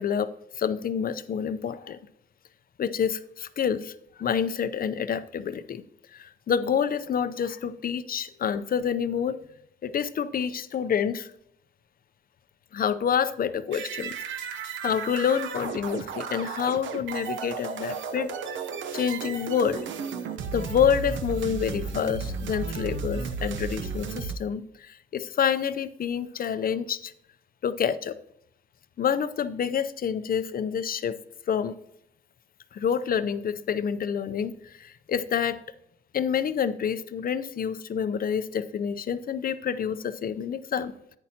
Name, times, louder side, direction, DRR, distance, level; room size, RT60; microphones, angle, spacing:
voice 1, 0.0-2.0 2.8-3.9 4.2-5.8 6.1-9.4 9.8-11.3 12.7-14.1 14.5-18.3 18.9-19.8 20.5-27.1 27.6-28.2 29.0-31.2 31.5-31.7 32.7-35.6 36.1-40.9, left 7 dB, 45° left, 13 dB, 0.6 m, -28 dB
sound 1, 13.7-24.3, right 5 dB, 70° right, 0.8 m, -34 dB
10.5 x 8.9 x 2.8 m, 0.79 s
cardioid pair, 90°, 20 cm